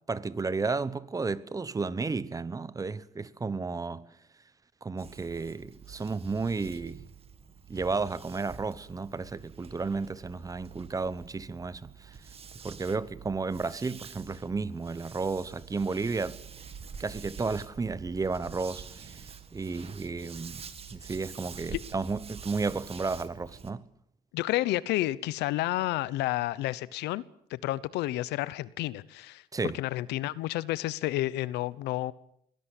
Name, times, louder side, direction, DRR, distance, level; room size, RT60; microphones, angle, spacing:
voice 1, 0.1-4.1 4.8-7.0 7.7-12.1 12.6-16.4 17.0-19.2 19.5-20.6 20.9-23.8 29.5-29.8, right 4 dB, 20° right, 1.0 m, -33 dB
sound 1, 5.0-23.7, right 6 dB, 35° right, 1.9 m, -47 dB
voice 2, 24.3-27.2 27.5-29.4 29.7-32.1, left 16 dB, 85° left, 0.9 m, -30 dB
22.5 x 17.0 x 8.5 m
cardioid pair, 110°, 17 cm